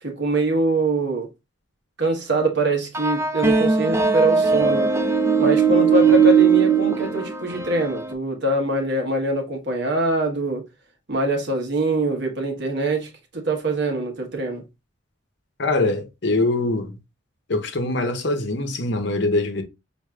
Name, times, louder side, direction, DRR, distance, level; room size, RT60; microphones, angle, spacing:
voice 1, 0.0-1.3 2.0-4.9 5.4-10.7 11.1-14.6, right 2 dB, 55° right, 1.1 m, -24 dB
sound 1, 2.9-8.1, right 6 dB, 10° right, 0.4 m, -19 dB
voice 2, 15.6-16.9 17.5-19.6, left 2 dB, 55° left, 0.8 m, -23 dB
6.3 x 2.6 x 2.3 m
head